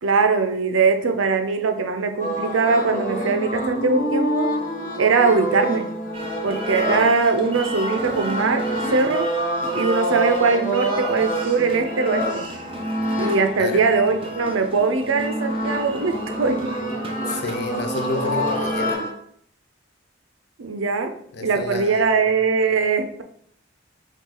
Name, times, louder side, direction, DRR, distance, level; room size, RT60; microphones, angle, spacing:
voice 1, 0.0-4.5 5.0-5.9 6.4-9.3 9.7-12.5 13.2-16.8 20.6-21.1 21.4-23.2, right 4 dB, 75° right, 6 dB, 0.6 m, -21 dB
sound 1, 2.2-19.1, equal, 40° left, 1.4 m, -27 dB
sound 2, 6.1-18.9, right 3 dB, 30° right, 0.5 m, -37 dB
voice 2, 17.3-19.0 21.3-22.2, left 3 dB, 55° left, 6 dB, 0.6 m, -30 dB
5.8 x 2.4 x 3.8 m, 0.65 s
head